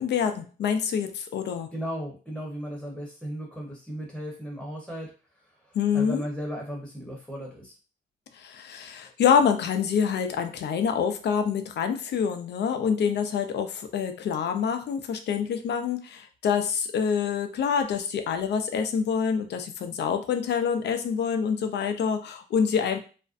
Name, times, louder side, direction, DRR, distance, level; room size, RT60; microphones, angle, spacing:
voice 1, 0.0-1.7 5.7-6.2 8.4-23.0, left 7 dB, 60° left, 7 dB, 0.5 m, -26 dB
voice 2, 1.7-7.8, equal, ahead, -3 dB, 0.9 m, -36 dB
2.5 x 2.1 x 2.5 m, 0.35 s
cardioid pair, 90°, 20 cm